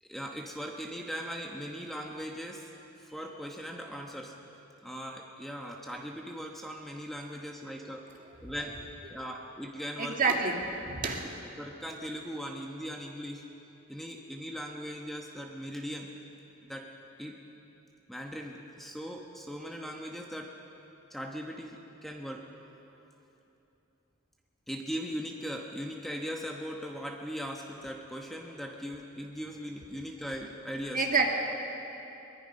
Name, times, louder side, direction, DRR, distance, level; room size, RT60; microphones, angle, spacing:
voice 1, 0.0-2.7 3.0-4.3 4.8-8.0 8.4-8.7 9.1-10.3 11.6-13.4 13.9-16.1 16.6-16.9 17.2-17.3 18.1-20.5 21.1-22.4 24.7-31.0, equal, ahead, 1 dB, 1.1 m, -39 dB
voice 2, 10.0-10.6 10.9-11.3 30.9-31.3, right 4 dB, 40° right, 1 dB, 2.1 m, -27 dB
23.0 x 21.5 x 5.4 m, 2.9 s
head